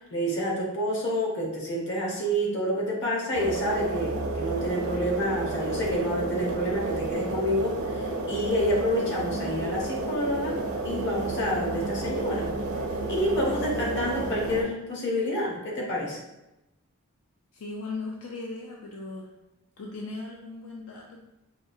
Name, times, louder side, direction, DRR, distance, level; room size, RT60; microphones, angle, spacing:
voice 1, 0.1-10.6 10.8-12.5 13.1-16.2, equal, 55° left, -3 dB, 1.0 m, -28 dB
sound 1, 3.3-14.6, right 2 dB, 75° right, 0.6 m, -31 dB
voice 2, 17.5-19.3 19.8-21.2, left 3 dB, 80° left, -1 dB, 0.5 m, -37 dB
4.9 x 2.3 x 2.6 m, 0.94 s
head